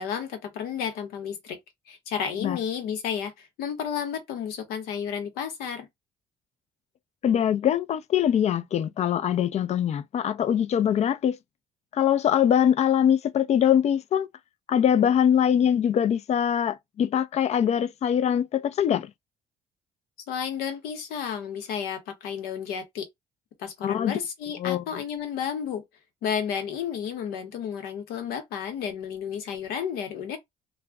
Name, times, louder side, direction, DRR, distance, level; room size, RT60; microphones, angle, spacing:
voice 1, 0.0-1.6 1.9-5.9 20.3-23.1 23.6-25.8 26.2-30.4, left 8 dB, 85° left, 0.9 m, -32 dB
voice 2, 7.2-11.4 11.9-14.3 14.7-19.1 23.8-24.2 24.6-24.8, left 9 dB, 45° left, 0.4 m, -23 dB
2.3 x 2.1 x 3.4 m
cardioid pair, 90°, 15 cm